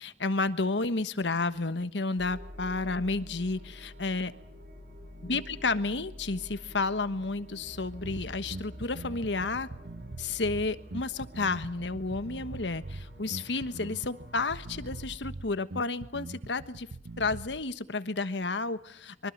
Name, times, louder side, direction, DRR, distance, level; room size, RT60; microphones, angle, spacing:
voice 1, 0.0-4.3 5.2-9.7 10.2-16.9 17.2-19.3, left 3 dB, 80° left, 13 dB, 1.3 m, -31 dB
sound 1, 2.2-15.1, equal, 65° right, 7.9 m, -48 dB
Bass guitar, 8.0-17.6, right 2 dB, 90° right, 1.1 m, -42 dB
24.0 x 24.0 x 7.4 m, 0.67 s
head